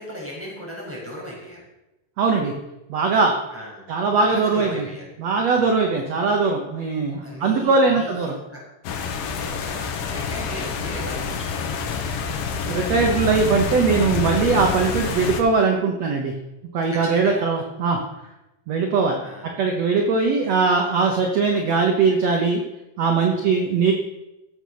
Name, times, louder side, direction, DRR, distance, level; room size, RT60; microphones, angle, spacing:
voice 1, 0.0-1.6 3.5-3.9 4.2-5.1 5.5-5.8 7.2-8.6 9.2-11.8 16.9-17.5 19.2-19.5 23.2-23.7, equal, 5° right, -4 dB, 5.2 m, -37 dB
voice 2, 2.2-2.5 2.9-3.4 3.9-4.9 5.2-8.4 12.7-16.3 16.7-18.0 18.7-19.2 19.6-22.6 23.0-23.9, right 4 dB, 60° right, 2 dB, 1.8 m, -20 dB
sound 1, 8.8-15.4, left 5 dB, 70° left, 2.8 m, -27 dB
15.0 x 7.6 x 6.4 m, 0.95 s
omnidirectional pair, 4.6 m